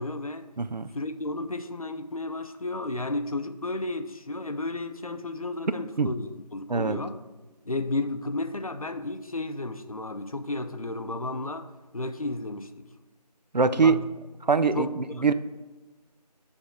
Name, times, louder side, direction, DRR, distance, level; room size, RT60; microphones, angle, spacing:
voice 1, 0.0-0.5 0.9-7.2 7.7-12.9 13.7-14.0 14.7-14.9 15.2-15.3, left 2 dB, 55° left, 0.6 m, -33 dB
voice 2, 0.6-0.9 6.0-6.1 6.7-7.0 13.5-14.0 14.4-15.3, right 4 dB, 90° right, 0.5 m, -23 dB
9.5 x 3.5 x 4.8 m
figure-of-eight pair, 170°, 21 cm